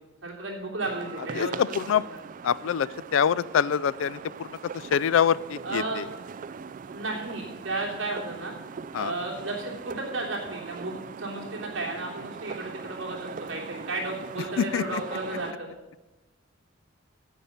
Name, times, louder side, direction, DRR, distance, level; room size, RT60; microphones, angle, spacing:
voice 1, 0.2-2.0 5.6-6.1 6.9-8.5 8.9-15.7, right 2 dB, 75° right, -2 dB, 3.0 m, -33 dB
sound 1, 0.8-15.5, right 6 dB, 40° right, 0.3 m, -41 dB
voice 2, 1.4-2.0 2.4-4.5 4.9-6.1 8.9-9.1 14.6-15.0, left 8 dB, 70° left, 18 dB, 0.3 m, -25 dB
9.6 x 7.9 x 7.0 m, 1.1 s
head